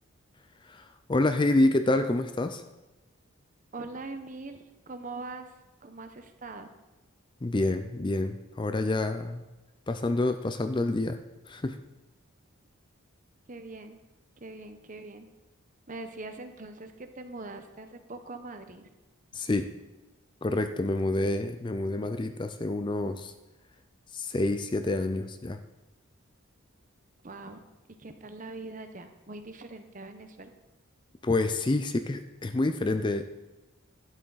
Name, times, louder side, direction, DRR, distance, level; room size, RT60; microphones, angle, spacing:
voice 1, 0.6-2.6 7.4-9.4 9.9-11.2 11.5-11.8 19.3-19.7 20.4-23.3 24.1-25.6 31.2-33.2, left 2 dB, 20° left, 9 dB, 0.4 m, -28 dB
voice 2, 3.7-5.5 5.8-6.7 13.5-14.0 14.4-15.3 15.9-18.9 27.2-27.6 28.0-30.5, right 3 dB, 35° right, 8 dB, 0.9 m, -42 dB
12.5 x 10.0 x 4.0 m, 1.1 s
head